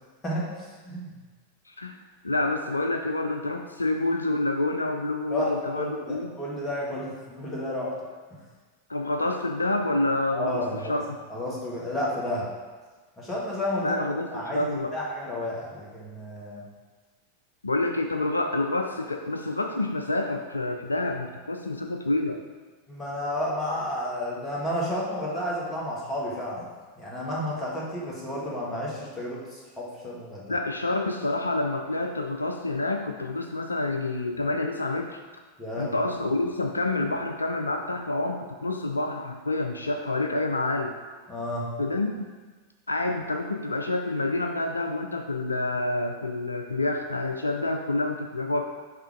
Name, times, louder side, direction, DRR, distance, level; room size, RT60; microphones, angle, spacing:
voice 1, 1.7-2.0 2.2-6.4 8.9-11.2 13.8-14.9 17.6-22.4 30.5-35.2 35.8-41.0 41.8-42.2 42.9-48.6, left 2 dB, 80° left, 4 dB, 0.3 m, -28 dB
voice 2, 5.7-7.9 10.3-11.0 11.3-12.5 13.2-14.0 14.3-14.6 14.9-16.6 22.9-26.6 27.0-30.6 35.6-36.0 41.3-41.7, left 1 dB, 15° left, -5 dB, 1.8 m, -31 dB
5.6 x 3.6 x 5.0 m, 1.4 s
figure-of-eight pair, 90°, 0 cm